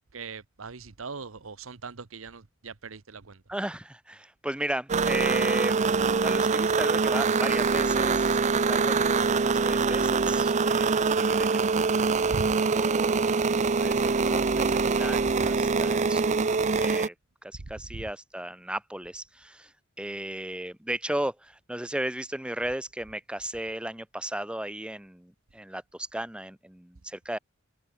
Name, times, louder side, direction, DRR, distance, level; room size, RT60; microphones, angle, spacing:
voice 1, 0.0-3.4 8.9-9.0 12.3-12.5 17.9-18.0, right 4 dB, 85° right, 1.1 m, -39 dB
voice 2, 3.5-5.9 6.2-11.5 12.5-17.1 17.4-19.7 20.0-27.4, right 1 dB, 5° right, 0.8 m, -35 dB
sound 1, 4.9-17.1, right 4 dB, 35° right, 0.6 m, -24 dB
head